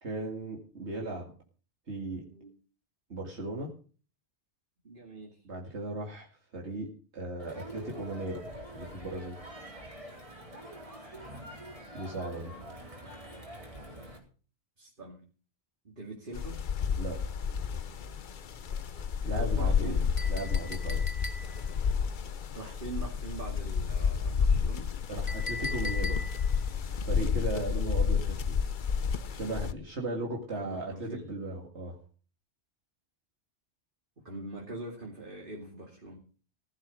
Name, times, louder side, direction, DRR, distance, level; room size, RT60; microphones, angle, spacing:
voice 1, 0.0-1.3 1.9-2.2 3.1-3.7 5.4-8.4 8.7-9.4 11.9-12.5 17.0-17.2 19.2-20.0 20.3-21.0 25.1-26.2 27.1-28.6 29.3-32.0, right 2 dB, 80° right, -1 dB, 2.5 m, -37 dB
voice 2, 4.8-5.4 12.3-12.8 14.8-15.2 15.8-16.6 19.4-20.1 22.5-24.9 30.6-31.3 34.2-36.2, right 2 dB, 50° right, -1 dB, 2.7 m, -43 dB
Crowd, 7.4-14.2, equal, 30° right, 3.9 m, -46 dB
sound 1, 16.3-29.7, left 6 dB, 50° left, 0.9 m, -30 dB
Chink clink, 20.2-21.8 25.3-26.6, left 3 dB, 30° left, 1.2 m, -39 dB
16.0 x 7.4 x 6.4 m, 0.40 s
omnidirectional pair, 1.1 m